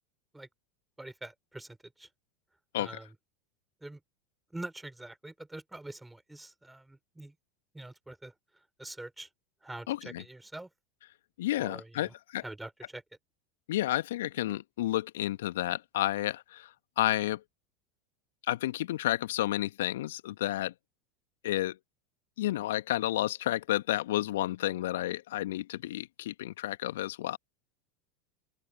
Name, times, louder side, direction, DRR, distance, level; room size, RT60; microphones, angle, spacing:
voice 1, 1.0-2.1 2.8-3.1 3.8-4.0 4.5-7.3 7.7-8.3 8.8-9.3 9.6-10.7 11.6-12.1 12.4-13.0, right 2 dB, 5° right, 5.7 m, -44 dB
voice 2, 9.9-10.2 11.4-12.4 13.7-17.4 18.5-20.7 21.4-21.8 22.4-27.4, left 15 dB, 65° left, 1.7 m, -31 dB
open air
figure-of-eight pair, 80°, 0 cm